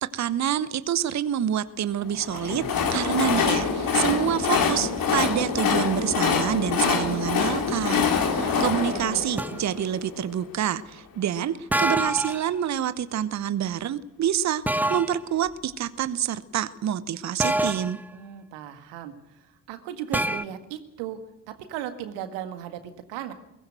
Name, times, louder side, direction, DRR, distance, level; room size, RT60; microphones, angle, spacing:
voice 1, 0.0-18.0, right 10 dB, 35° right, 17 dB, 0.9 m, -27 dB
Train, 2.2-10.3, left 6 dB, 45° left, 2.6 m, -25 dB
voice 2, 8.4-9.3 18.1-21.2 21.5-23.3, right 10 dB, 65° right, 9 dB, 1.9 m, -37 dB
sound 1, 9.4-9.7 11.7-12.5 14.7-15.2 17.4-18.0 20.1-20.4, right 1 dB, 5° right, 0.7 m, -26 dB
22.0 x 17.0 x 7.9 m, 0.91 s
figure-of-eight pair, 40°, 46 cm